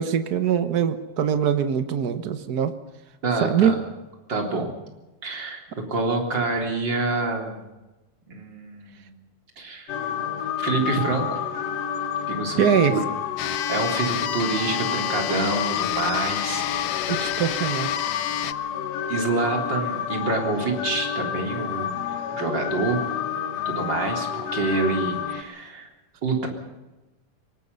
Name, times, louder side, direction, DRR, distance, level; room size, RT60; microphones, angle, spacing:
voice 1, 0.0-2.7 3.4-3.7 12.6-13.0 17.1-17.9, right 8 dB, 85° right, 10 dB, 0.8 m, -22 dB
voice 2, 3.2-3.8 4.3-4.7 5.2-5.6 5.9-7.6 8.3-9.2 9.6-10.1 10.6-11.4 12.3-12.6 12.9-13.0 13.7-16.7 17.0-17.1 19.1-23.0 23.7-25.9 26.2-26.5, right 3 dB, 35° right, 2 dB, 4.1 m, -27 dB
sound 1, 9.9-25.4, left 8 dB, 60° left, 2.2 m, -29 dB
sound 2, 13.4-18.5, left 13 dB, 85° left, 1.3 m, -30 dB
24.0 x 19.5 x 5.6 m, 1.1 s
omnidirectional pair, 3.6 m